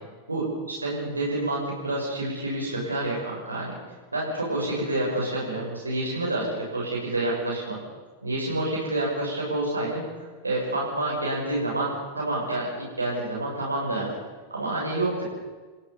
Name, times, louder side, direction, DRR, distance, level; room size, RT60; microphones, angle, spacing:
voice 1, 0.3-3.7 4.1-6.4 6.7-7.8 8.2-10.0 10.4-14.1 14.5-15.2, right 2 dB, 80° right, -4 dB, 7.4 m, -28 dB
29.0 x 15.5 x 7.3 m, 1.3 s
figure-of-eight pair, 90°, 0 cm